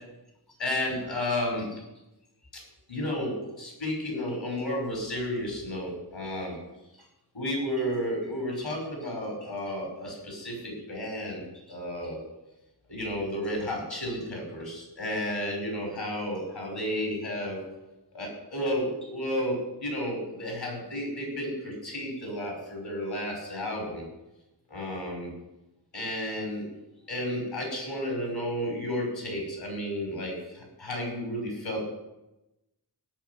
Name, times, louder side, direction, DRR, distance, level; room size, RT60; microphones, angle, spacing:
voice 1, 0.6-1.8 2.5-2.6 2.9-6.6 7.3-12.2 12.9-17.6 18.1-24.0 24.7-25.3 25.9-26.7 27.1-31.9, left 1 dB, 80° left, 0 dB, 5.9 m, -32 dB
17.5 x 6.0 x 9.8 m, 0.97 s
wide cardioid pair, 45°, 44 cm